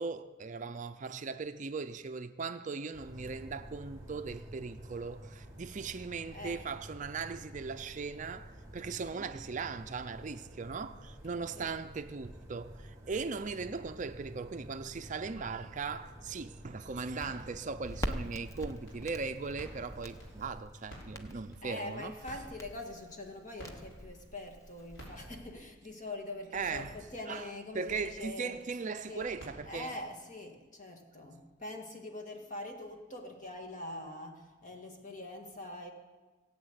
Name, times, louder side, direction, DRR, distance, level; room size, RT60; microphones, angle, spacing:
voice 1, 0.0-22.1 26.5-27.0 27.3-27.4 27.7-30.0, right 4 dB, 40° right, 0.5 m, -39 dB
sound 1, 2.9-20.6, equal, 15° right, 1.8 m, -50 dB
voice 2, 6.3-6.6 9.1-9.3 11.5-11.8 21.6-28.5 29.1-29.3 29.7-35.9, left 2 dB, 40° left, 2.0 m, -44 dB
sound 2, 16.8-30.2, equal, 85° left, 5.7 m, -53 dB
Crackle, 17.8-25.1, equal, 15° left, 0.9 m, -44 dB
18.5 x 8.6 x 8.1 m
head